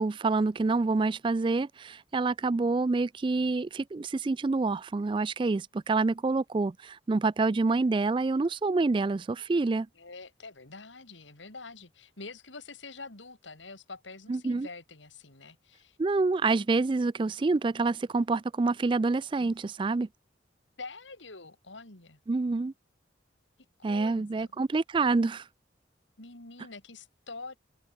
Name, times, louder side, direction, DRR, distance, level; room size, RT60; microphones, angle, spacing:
voice 1, 0.0-9.9 14.3-14.7 16.0-20.1 22.3-22.7 23.8-25.5, right 3 dB, 25° right, 0.3 m, -27 dB
voice 2, 10.0-16.0 20.8-22.2 23.8-24.5 26.2-27.6, left 3 dB, 85° left, 3.4 m, -46 dB
head